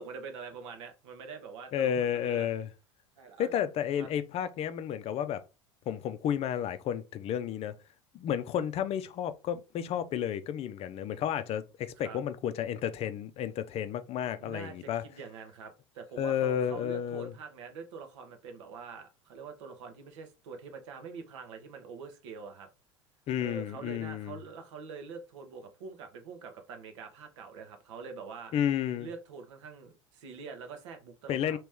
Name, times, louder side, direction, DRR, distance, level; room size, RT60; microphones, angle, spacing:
voice 1, 0.0-2.5 3.2-3.6 4.0-4.1 12.0-12.2 14.4-22.7 23.4-28.5 29.0-31.6, right 5 dB, 75° right, 1.0 m, -45 dB
voice 2, 1.7-2.7 3.4-5.4 5.9-7.7 8.1-15.0 16.2-17.3 23.3-24.4 28.5-29.1 31.3-31.6, left 9 dB, 40° left, 0.5 m, -32 dB
3.0 x 3.0 x 3.5 m
hypercardioid pair, 85°, 16 cm